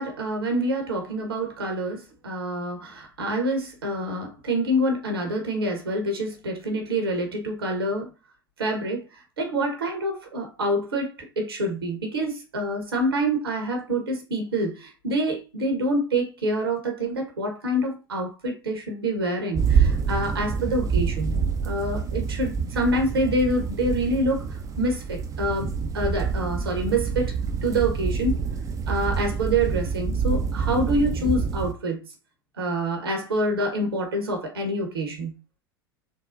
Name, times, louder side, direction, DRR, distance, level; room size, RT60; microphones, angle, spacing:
voice 1, 0.0-8.1 8.6-27.4 27.6-28.4 28.9-32.0 32.6-35.3, right 1 dB, 80° right, 1.0 m, -26 dB
sound 1, 19.5-31.7, right 6 dB, 25° right, 0.4 m, -27 dB
3.8 x 2.0 x 2.5 m
figure-of-eight pair, 80°, 12 cm